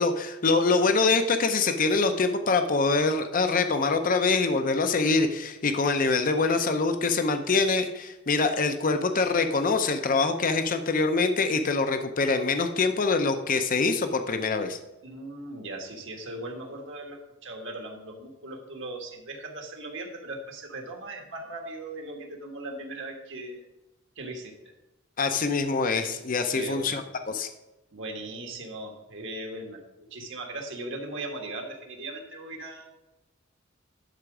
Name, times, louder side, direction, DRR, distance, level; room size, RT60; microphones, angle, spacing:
voice 1, 0.0-14.8 25.2-27.5, left 4 dB, 40° left, 7 dB, 0.6 m, -24 dB
voice 2, 15.0-23.6 24.1-24.7 26.5-27.0 27.9-32.9, right 2 dB, 65° right, 2 dB, 1.5 m, -38 dB
11.5 x 4.4 x 4.9 m, 0.99 s
head